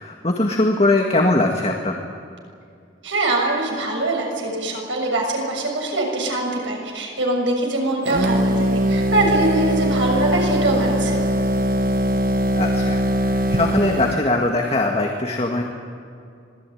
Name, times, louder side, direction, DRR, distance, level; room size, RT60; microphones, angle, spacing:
voice 1, 0.0-2.0 12.5-15.6, left 2 dB, 35° left, 1 dB, 1.9 m, -21 dB
voice 2, 3.0-11.2, right 2 dB, 90° right, 1 dB, 6.8 m, -23 dB
sound 1, 8.0-14.3, equal, 50° right, 1.2 m, -21 dB
26.0 x 20.0 x 9.4 m, 2.4 s
head